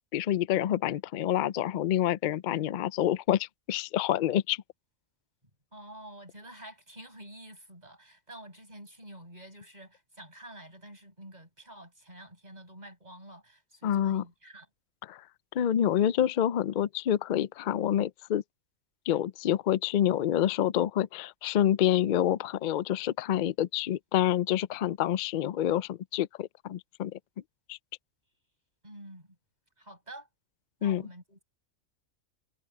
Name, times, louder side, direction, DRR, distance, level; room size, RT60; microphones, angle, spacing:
voice 1, 0.1-4.6 13.8-14.2 15.1-15.2 15.5-18.4 19.1-27.2 27.7-27.8 30.8-31.0, left 11 dB, 75° left, 0.4 m, -27 dB
voice 2, 5.7-14.7 28.8-29.4 29.8-30.3 30.8-31.4, right 1 dB, 30° right, 8.3 m, -48 dB
omnidirectional pair, 1.4 m